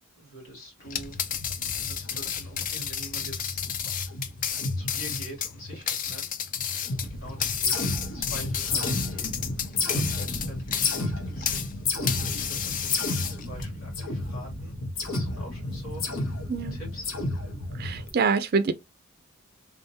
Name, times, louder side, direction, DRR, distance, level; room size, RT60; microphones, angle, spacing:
voice 1, 0.2-1.2 1.7-3.6 4.8-6.2 7.0-7.8 8.1-9.3 9.6-11.7 12.1-14.8 15.1-16.0 16.7-17.1, right 1 dB, 90° left, 2.9 m, -45 dB
sound 1, 0.8-11.7 12.1-13.7, left 9 dB, 40° left, 0.5 m, -32 dB
sound 2, 0.9-6.2 6.4-18.1, left 2 dB, 70° left, 1.1 m, -32 dB
voice 2, 17.8-18.7, right 5 dB, 45° right, 0.4 m, -25 dB
3.8 x 3.5 x 2.7 m
head